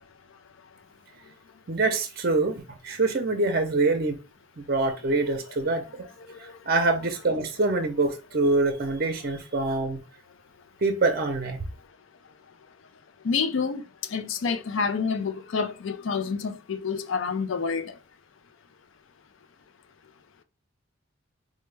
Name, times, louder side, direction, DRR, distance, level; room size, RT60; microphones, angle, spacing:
voice 1, 1.7-4.2 4.6-5.8 6.7-10.0 10.8-11.6, right 3 dB, 45° right, 0.6 m, -25 dB
voice 2, 13.2-13.8 14.1-18.0, left 5 dB, 70° left, 0.4 m, -28 dB
4.3 x 2.1 x 3.2 m
head